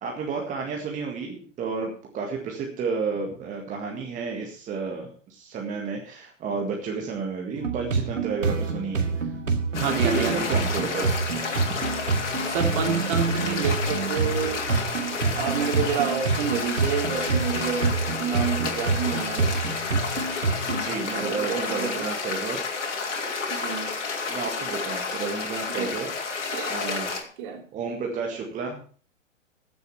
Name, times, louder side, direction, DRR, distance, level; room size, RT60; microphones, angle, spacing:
voice 1, 0.0-9.3 9.8-11.1 20.7-22.6 24.3-26.1 26.7-27.1 27.7-28.8, right 4 dB, 20° right, 1 dB, 1.9 m, -31 dB
sound 1, 7.5-20.8, right 4 dB, 75° right, 2.3 m, -27 dB
sound 2, 9.7-27.2, left 4 dB, 65° left, 3.0 m, -31 dB
voice 2, 9.8-10.5 12.4-14.6 15.4-17.9 18.2-19.5 21.2-22.1 23.5-23.9 25.7-26.0 26.5-26.7 27.4-27.6, right 7 dB, 40° right, 3 dB, 3.2 m, -29 dB
15.0 x 7.2 x 5.7 m, 0.42 s
figure-of-eight pair, 115°, 39 cm